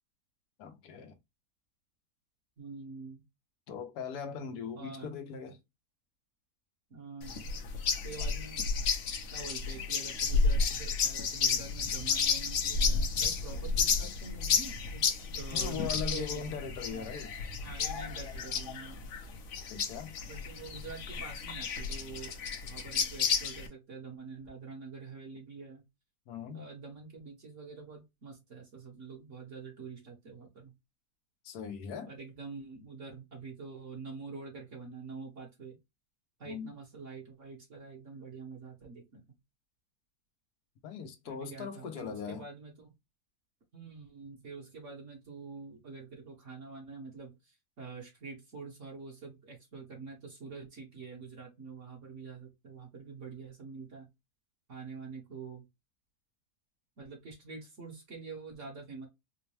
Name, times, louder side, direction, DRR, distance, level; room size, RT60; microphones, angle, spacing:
voice 1, 0.6-1.1 3.7-5.6 15.5-17.3 19.7-20.2 26.3-26.7 31.4-32.1 36.4-36.7 40.8-42.4, left 7 dB, 75° left, 1.2 m, -40 dB
voice 2, 2.6-3.2 4.7-5.1 6.9-7.6 8.0-8.6 9.3-16.4 16.9-17.0 17.6-19.1 20.3-22.4 22.6-25.8 26.5-30.7 32.1-35.8 36.4-39.2 41.2-42.9 43.7-54.1 54.7-55.6 57.0-59.1, right 4 dB, 50° right, 1.5 m, -46 dB
sound 1, 7.2-23.7, left 5 dB, 60° left, 0.9 m, -32 dB
4.3 x 2.2 x 3.0 m
omnidirectional pair, 1.8 m